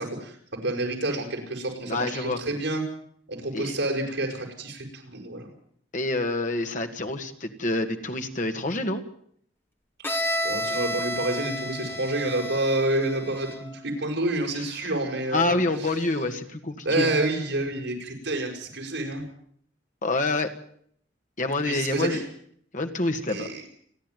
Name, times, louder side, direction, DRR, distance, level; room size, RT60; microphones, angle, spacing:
voice 1, 0.0-2.8 3.3-5.5 10.4-16.0 16.8-19.3 21.6-22.2 23.3-23.6, right 2 dB, 70° right, 2 dB, 6.3 m, -28 dB
voice 2, 1.9-2.4 3.5-3.8 5.9-9.0 15.3-17.1 20.0-20.5 21.4-22.2 22.7-23.5, left 2 dB, 45° left, 6 dB, 1.9 m, -27 dB
Bowed string instrument, 10.0-13.8, equal, 10° left, 1.9 m, -31 dB
29.5 x 10.5 x 9.2 m, 0.64 s
head